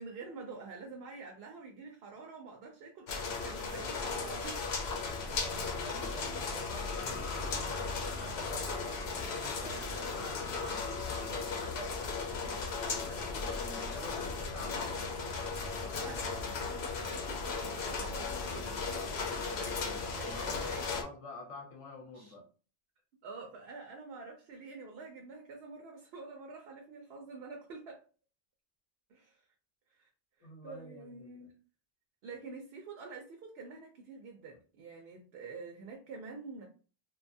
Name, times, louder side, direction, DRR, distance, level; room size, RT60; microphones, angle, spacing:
voice 1, 0.0-4.7 15.9-20.9 22.1-22.3 23.2-28.0 29.1-29.5 29.9-30.1 30.4-31.5 32.2-36.7, right 4 dB, 75° right, 0.8 m, -47 dB
sound 1, 3.1-21.0, left 4 dB, 85° left, 0.9 m, -36 dB
voice 2, 5.0-12.0 12.4-15.5 15.9-16.6 18.4-18.7 20.2-22.4 30.4-31.5, left 2 dB, 35° left, 0.7 m, -49 dB
2.8 x 2.2 x 2.6 m
omnidirectional pair, 1.0 m